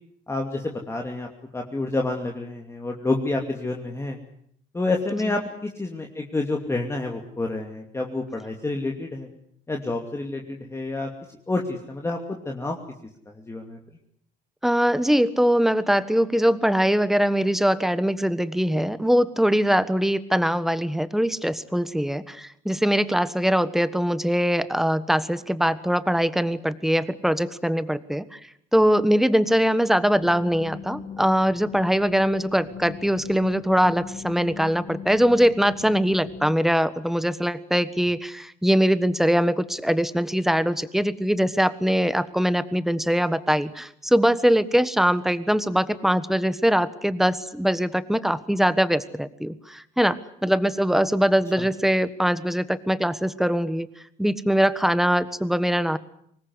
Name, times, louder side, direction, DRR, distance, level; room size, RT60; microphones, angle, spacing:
voice 1, 0.3-1.3 1.5-4.2 4.7-9.3 9.7-11.1 11.5-12.2 12.4-12.8 13.5-13.8 51.6-51.7, left 2 dB, 15° left, 2 dB, 2.6 m, -28 dB
voice 2, 14.6-28.4 28.7-53.9 54.2-56.0, equal, ahead, 14 dB, 1.4 m, -22 dB
sound 1, 30.1-36.6, left 7 dB, 40° left, 1.7 m, -39 dB
24.5 x 20.0 x 9.7 m, 0.68 s
cardioid pair, 110°, 17 cm